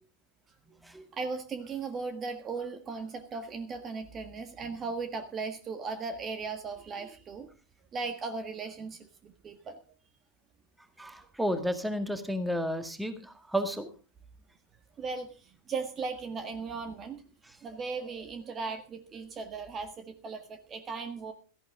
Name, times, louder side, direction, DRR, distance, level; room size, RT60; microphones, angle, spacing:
voice 1, 1.1-7.5 7.9-9.8 15.0-17.2 17.6-21.3, right 4 dB, 25° right, 9 dB, 1.6 m, -37 dB
voice 2, 11.0-13.9, equal, 5° right, 9 dB, 1.9 m, -32 dB
17.0 x 14.5 x 3.7 m, 0.34 s
figure-of-eight pair, 90°, 0 cm